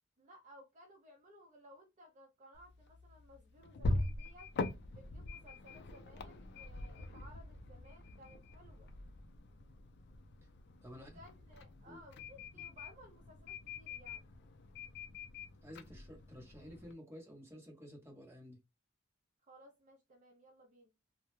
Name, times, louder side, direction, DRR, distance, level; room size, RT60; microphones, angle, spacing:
voice 1, 0.2-4.5 4.9-8.9 10.9-14.2 19.4-20.9, equal, 35° right, 0.5 m, -59 dB
sound 1, 2.5-16.9, left 2 dB, 55° left, 0.4 m, -43 dB
voice 2, 10.8-11.2 11.9-12.0 12.5-12.6 15.6-18.6, equal, 15° right, 0.8 m, -52 dB
2.2 x 2.0 x 3.0 m
head